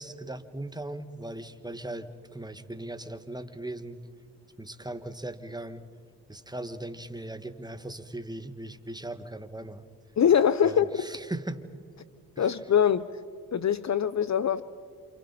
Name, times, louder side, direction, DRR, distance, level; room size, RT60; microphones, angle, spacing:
voice 1, 0.0-4.0 4.6-5.8 6.3-9.8 10.6-11.6 12.4-12.5, right 1 dB, 10° right, 1.8 m, -38 dB
voice 2, 10.2-10.9 12.4-13.1 13.5-14.6, left 8 dB, 45° left, 0.8 m, -23 dB
28.5 x 28.5 x 4.4 m
supercardioid pair, 50°, 40 cm